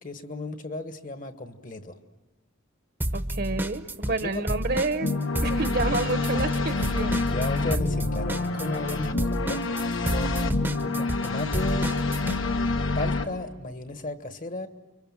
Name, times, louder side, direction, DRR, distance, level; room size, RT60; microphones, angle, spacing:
voice 1, 0.0-2.0 4.0-4.4 7.3-9.6 10.1-11.9 12.9-14.7, left 2 dB, 40° left, 8 dB, 1.4 m, -35 dB
sound 1, 3.0-4.2 4.5-12.4, right 1 dB, 10° right, 0.9 m, -30 dB
voice 2, 3.1-7.2, right 3 dB, 50° right, 10 dB, 1.2 m, -29 dB
sound 2, 5.0-13.3, left 3 dB, 80° left, 1.5 m, -27 dB
29.0 x 24.5 x 7.4 m, 1.1 s
head